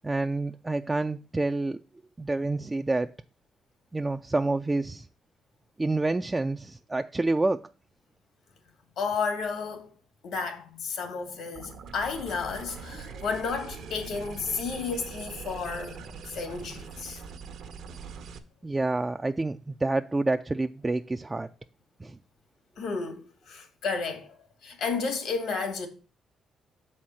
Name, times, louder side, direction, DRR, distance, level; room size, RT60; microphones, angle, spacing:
voice 1, 0.0-1.8 2.2-3.1 3.9-5.1 5.8-7.6 18.6-21.5 22.0-22.2, right 2 dB, 20° right, 0.3 m, -28 dB
voice 2, 9.0-9.9 10.2-17.2 22.8-25.9, left 5 dB, 75° left, 2.1 m, -32 dB
sound 1, 11.5-18.4, right 6 dB, 75° right, 0.9 m, -42 dB
7.2 x 4.3 x 6.2 m
cardioid pair, 90°, 0 cm